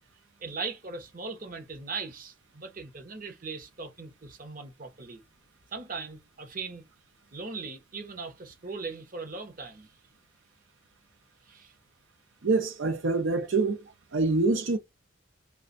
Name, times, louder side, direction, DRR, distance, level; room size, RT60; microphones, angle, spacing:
voice 1, 0.4-5.2 5.7-6.8 7.3-9.9 11.5-11.7, right 4 dB, 40° right, 0.8 m, -39 dB
voice 2, 12.4-13.8 14.1-14.8, right 3 dB, 70° right, 0.6 m, -25 dB
3.2 x 2.3 x 3.8 m
head